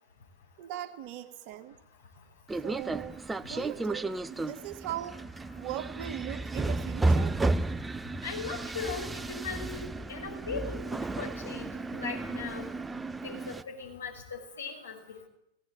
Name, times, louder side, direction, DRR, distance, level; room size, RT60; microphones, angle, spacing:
voice 1, 0.6-1.8 2.6-5.2 5.6-7.4, right 12 dB, 45° right, 7 dB, 2.0 m, -40 dB
sound 1, 2.5-13.6, right 2 dB, 10° right, 0.8 m, -33 dB
voice 2, 8.2-9.8 10.1-12.7 13.2-15.3, left 5 dB, 70° left, 1 dB, 6.3 m, -39 dB
17.5 x 17.5 x 8.8 m, 0.79 s
figure-of-eight pair, 90°, 0 cm